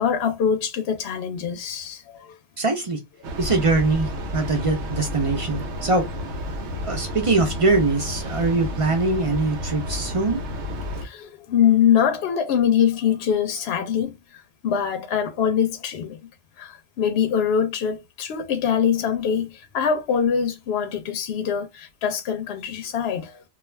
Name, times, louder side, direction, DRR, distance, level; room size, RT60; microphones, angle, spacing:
voice 1, 0.0-2.4 5.8-5.9 11.0-16.2 16.6-23.4, left 8 dB, 70° left, 0.8 m, -23 dB
voice 2, 2.6-3.0 3.4-6.1 6.8-10.4, right 3 dB, 40° right, 0.5 m, -22 dB
Train, 3.2-11.1, left 1 dB, 80° right, 0.9 m, -31 dB
2.3 x 2.2 x 3.1 m
omnidirectional pair, 1.2 m